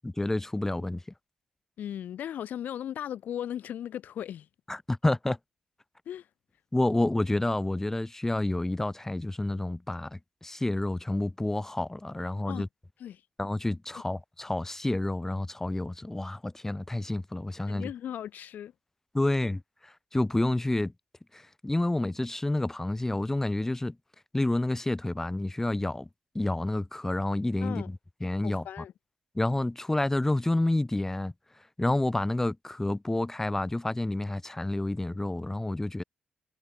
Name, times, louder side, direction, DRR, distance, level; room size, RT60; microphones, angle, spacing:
voice 1, 0.0-1.0 4.7-5.4 6.7-12.7 13.4-17.9 19.1-20.9 21.3-23.9 24.3-26.1 26.3-28.7 29.3-31.3 31.8-36.0, left 2 dB, 15° left, 4.6 m, -29 dB
voice 2, 1.8-4.5 6.1-6.3 12.5-12.7 13.0-13.2 17.7-18.7 27.6-27.9 28.4-28.9, left 10 dB, 75° left, 2.1 m, -37 dB
cardioid pair, 80°, 3 cm